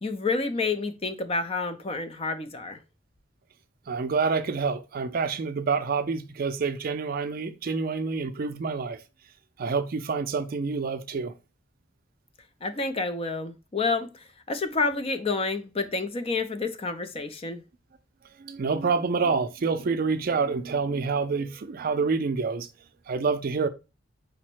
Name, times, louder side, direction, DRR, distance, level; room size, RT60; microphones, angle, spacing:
voice 1, 0.0-2.8 12.6-17.6, left 3 dB, 30° left, 0.5 m, -29 dB
voice 2, 3.9-9.0 9.6-11.3 18.4-22.7 23.1-23.7, right 4 dB, 50° right, 0.4 m, -27 dB
5.1 x 2.1 x 4.4 m
head